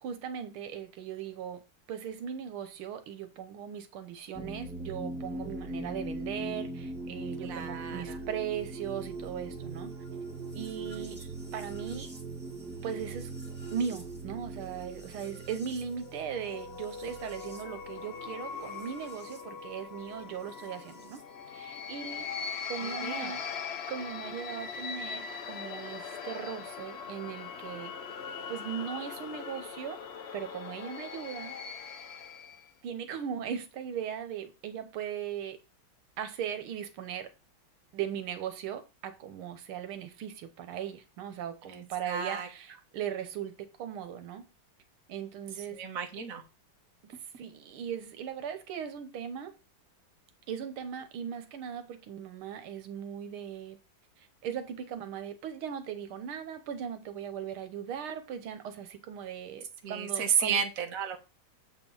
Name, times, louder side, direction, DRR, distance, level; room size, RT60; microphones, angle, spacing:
voice 1, 0.0-1.6 1.9-9.9 10.5-11.2 11.5-12.1 12.8-13.3 13.7-21.2 21.5-23.4 23.9-27.9 28.5-30.0 30.3-31.5 32.8-35.6 36.2-37.3 37.9-44.5 45.1-45.8 47.0-49.5 50.5-53.8 54.2-60.6, right 8 dB, 85° right, 1.9 m, -38 dB
sound 1, 4.3-19.4 20.6-21.2, right 2 dB, 5° right, 1.4 m, -41 dB
voice 2, 7.4-8.2 10.9-11.1 22.8-23.3 41.6-42.5 45.7-46.4 59.8-61.2, right 7 dB, 45° right, 1.5 m, -33 dB
sound 2, 15.9-32.7, left 6 dB, 85° left, 0.5 m, -41 dB
7.6 x 4.4 x 5.4 m
omnidirectional pair, 2.3 m